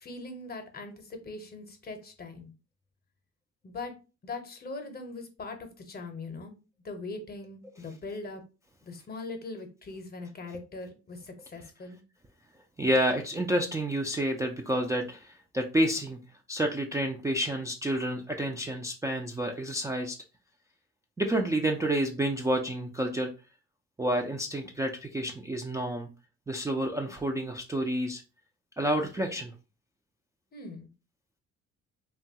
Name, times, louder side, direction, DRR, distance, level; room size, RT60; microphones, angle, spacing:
voice 1, 0.0-2.5 3.6-3.9 4.2-6.5 6.8-8.4 8.8-12.0 30.5-30.9, left 3 dB, 30° left, 6 dB, 0.7 m, -41 dB
voice 2, 12.8-16.2 16.5-20.2 21.2-23.3 24.0-26.1 26.5-28.2 28.8-29.5, right 1 dB, 10° right, 1 dB, 0.3 m, -29 dB
2.8 x 2.3 x 2.7 m, 0.32 s
cardioid pair, 90°, 30 cm